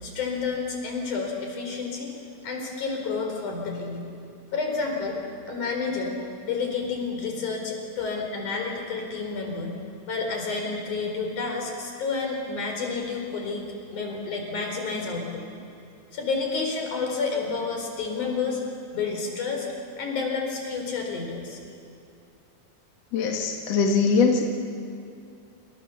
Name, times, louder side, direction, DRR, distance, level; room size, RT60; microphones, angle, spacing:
voice 1, 0.0-2.1 2.4-4.0 4.5-5.2 5.5-6.1 6.4-9.7 10.1-13.6 13.9-15.4 16.1-18.6 18.9-19.7 20.0-21.6, left 4 dB, 85° left, 2 dB, 5.8 m, -30 dB
voice 2, 23.1-24.4, left 5 dB, 60° left, 1 dB, 2.8 m, -21 dB
28.5 x 26.0 x 7.1 m, 2.5 s
omnidirectional pair, 3.4 m